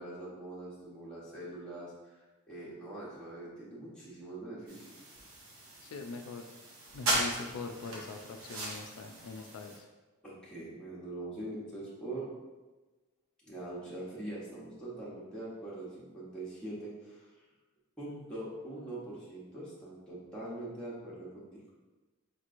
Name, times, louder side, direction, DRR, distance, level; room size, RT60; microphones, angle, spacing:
voice 1, 0.0-4.8 10.2-12.3 13.5-17.3 18.0-21.6, right 2 dB, 5° left, -9 dB, 0.8 m, -43 dB
sound 1, 4.7-9.8, right 1 dB, 65° right, 0.8 m, -37 dB
voice 2, 5.8-6.5 6.9-9.9, left 4 dB, 85° left, 4 dB, 0.3 m, -42 dB
4.5 x 2.9 x 2.5 m, 1.2 s
head